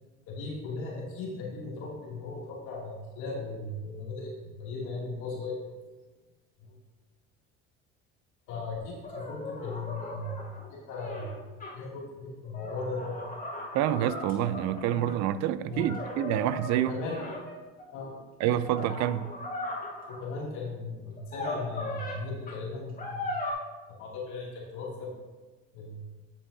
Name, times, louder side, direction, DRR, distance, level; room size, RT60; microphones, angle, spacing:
voice 1, 0.3-5.6 6.6-6.7 8.5-10.4 10.7-11.4 11.7-13.2 15.7-16.0 16.7-17.3 17.9-18.2 20.1-23.4 23.9-25.1 25.7-26.0, left 3 dB, 75° left, -4 dB, 2.6 m, -37 dB
sound 1, 9.0-11.7 12.4-15.2 15.7-17.8 18.4-20.2 21.2-22.2 22.5-22.6 23.0-23.5, left 2 dB, 30° left, 2.6 m, -38 dB
voice 2, 13.7-16.9 18.4-19.3, right 11 dB, 65° right, 14 dB, 0.5 m, -27 dB
9.3 x 7.1 x 2.7 m, 1.3 s
supercardioid pair, 90°, 30 cm